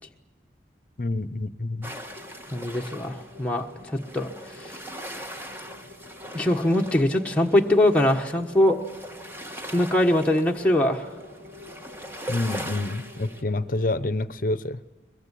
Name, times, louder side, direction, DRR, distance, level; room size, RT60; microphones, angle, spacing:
voice 1, 1.0-1.9 12.3-14.8, left 2 dB, 50° left, 15 dB, 0.8 m, -28 dB
sound 1, 1.8-13.4, equal, 15° right, 1.5 m, -41 dB
sound 2, 2.0-14.1, left 1 dB, 75° right, 4.3 m, -48 dB
voice 2, 2.5-4.3 4.6-4.7 6.3-8.8 9.7-11.1, left 1 dB, 5° left, 0 dB, 1.3 m, -22 dB
23.0 x 22.0 x 8.4 m, 1.2 s
head